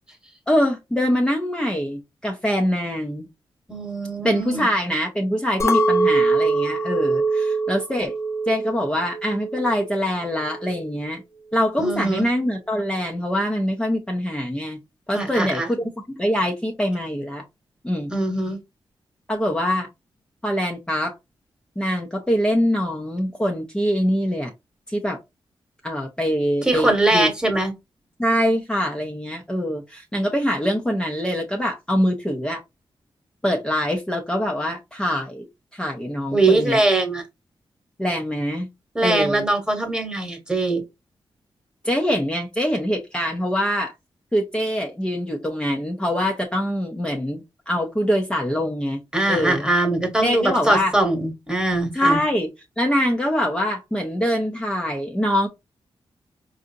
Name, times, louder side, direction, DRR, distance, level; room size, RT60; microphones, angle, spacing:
voice 1, 0.5-3.3 4.2-8.1 8.5-11.2 11.5-14.8 15.1-17.4 17.8-18.1 19.3-19.9 20.4-21.1 21.8-24.5 24.9-25.2 25.8-27.3 28.2-32.6 33.4-35.5 35.7-36.8 38.0-38.7 39.0-39.5 41.8-43.9 44.3-49.0 49.3-49.6 50.2-50.9 51.9-52.5 52.8-55.5, equal, 10° left, 0.6 m, -24 dB
voice 2, 3.7-4.7 11.8-12.3 15.1-15.7 18.1-18.6 26.6-27.7 36.3-37.2 38.9-40.8 49.1-52.2, right 2 dB, 10° right, 1.2 m, -21 dB
Chink clink, 5.6-10.0 10.3-10.9, right 2 dB, 30° left, 0.9 m, -23 dB
4.8 x 2.5 x 2.6 m
wide cardioid pair, 135°, 9 cm